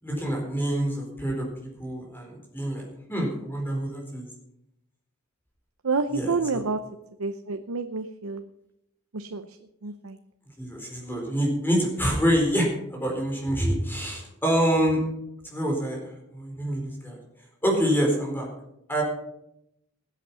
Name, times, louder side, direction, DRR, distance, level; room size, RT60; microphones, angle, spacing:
voice 1, 0.0-1.5 1.8-4.3 6.1-6.6 10.6-15.0 15.5-16.0 16.3-17.2 17.6-18.5 18.9-19.0, equal, 10° left, 0 dB, 4.2 m, -26 dB
voice 2, 5.8-6.8 7.2-8.5 9.1-9.5 9.8-10.2, right 4 dB, 75° right, 8 dB, 0.8 m, -28 dB
19.0 x 8.4 x 5.6 m, 0.82 s
head